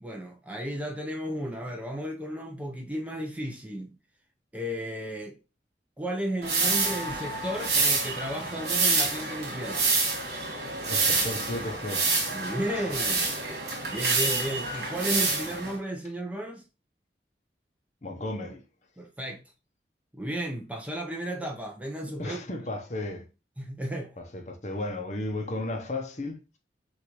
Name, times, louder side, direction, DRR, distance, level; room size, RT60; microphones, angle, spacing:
voice 1, 0.0-3.9 4.5-5.4 6.0-9.8 12.3-13.3 13.9-16.6 19.0-19.4 20.1-22.4 23.6-24.2, right 1 dB, 10° right, 0.7 m, -34 dB
sound 1, 6.4-15.8, right 3 dB, 65° right, 2.2 m, -27 dB
voice 2, 10.9-12.1 12.8-12.9 18.0-18.6 22.2-23.3 24.2-26.4, left 1 dB, 40° left, 0.8 m, -34 dB
5.9 x 2.6 x 3.0 m
head